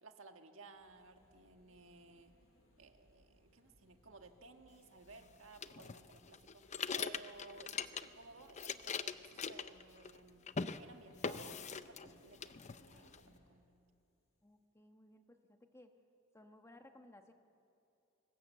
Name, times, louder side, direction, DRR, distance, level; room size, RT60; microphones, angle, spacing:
voice 1, 0.0-2.3 2.8-10.5 10.7-12.5 12.9-13.7, right 3 dB, 70° right, 5 dB, 1.6 m, -57 dB
sound 1, 0.7-13.6, equal, 75° left, 5.0 m, -68 dB
sound 2, 5.6-8.2 8.5-10.2 10.5-10.8 11.2-12.1 12.4-13.2, left 6 dB, 35° left, 0.6 m, -41 dB
voice 2, 14.4-15.9 16.3-17.3, left 1 dB, 15° left, 5 dB, 1.2 m, -60 dB
23.0 x 19.5 x 8.2 m, 2.7 s
head